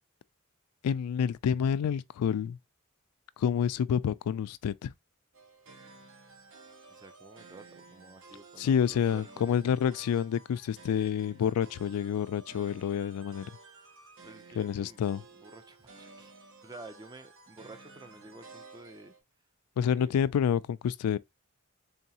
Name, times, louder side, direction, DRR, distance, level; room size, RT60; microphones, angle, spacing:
voice 1, 0.8-2.6 3.4-4.9 8.6-13.5 14.6-15.2 19.8-21.2, left 8 dB, 85° left, 0.3 m, -28 dB
sound 1, 5.3-19.2, right 3 dB, 65° right, 1.0 m, -53 dB
voice 2, 6.9-9.7 14.2-15.0 15.3-19.1 19.9-20.2, right 2 dB, 20° right, 0.5 m, -51 dB
3.9 x 3.5 x 2.8 m
head